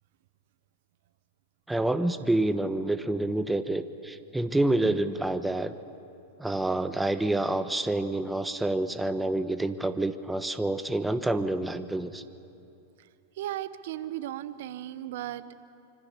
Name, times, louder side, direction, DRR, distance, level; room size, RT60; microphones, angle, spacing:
voice 1, 1.7-5.7 6.4-12.2, right 2 dB, 5° right, 11 dB, 1.2 m, -28 dB
voice 2, 13.3-15.7, right 13 dB, 65° right, 13 dB, 1.1 m, -36 dB
26.0 x 24.5 x 7.1 m, 2.8 s
hypercardioid pair, 110°, 0 cm